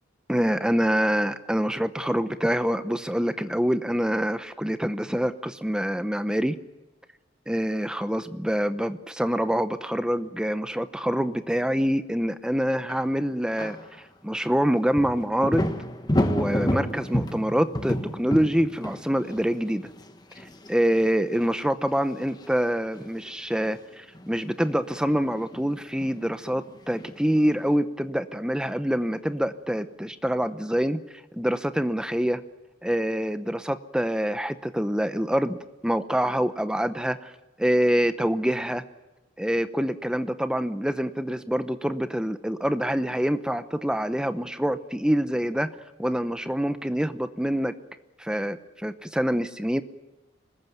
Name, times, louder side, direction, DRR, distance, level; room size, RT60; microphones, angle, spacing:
voice 1, 0.3-6.6 7.5-15.7 16.2-19.9 20.4-31.0 31.3-32.4 32.8-35.6 35.8-37.3 37.6-38.8 39.4-45.7 46.0-47.7 48.2-49.8, equal, 5° right, 11 dB, 0.8 m, -26 dB
sound 1, 12.9-13.0 13.6-13.9 15.0-21.1 21.4-21.5 22.0-22.2 22.5-22.7 23.0-23.3 24.1-26.7 27.0-27.7, equal, 20° left, 1.4 m, -30 dB
25.5 x 20.5 x 9.3 m, 1.1 s
head